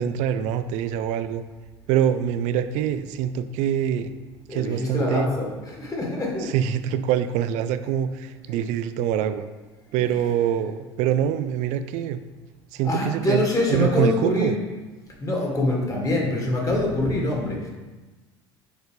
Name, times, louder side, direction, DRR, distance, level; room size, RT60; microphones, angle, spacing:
voice 1, 0.0-1.4 1.9-4.1 4.5-5.3 6.4-9.4 9.9-12.2 12.7-14.6, right 9 dB, 60° right, 11 dB, 0.4 m, -24 dB
voice 2, 4.5-6.6 8.5-8.6 12.8-14.6 15.2-17.7, left 1 dB, 25° left, -1 dB, 1.9 m, -25 dB
6.5 x 4.4 x 3.4 m, 1.2 s
hypercardioid pair, 70°, 14 cm